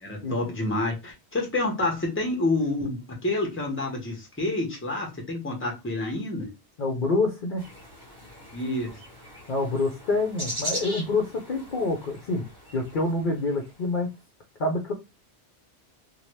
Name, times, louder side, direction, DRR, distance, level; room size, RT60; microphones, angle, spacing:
voice 1, 0.0-6.5 8.5-8.9, left 2 dB, 15° left, 0 dB, 0.8 m, -28 dB
voice 2, 6.8-7.6 9.5-12.4 12.7-14.1 14.6-14.9, left 2 dB, 55° left, 1 dB, 0.7 m, -26 dB
sound 1, 7.6-13.8, equal, 20° right, 1.2 m, -39 dB
2.8 x 2.2 x 3.1 m, 0.25 s
omnidirectional pair, 1.1 m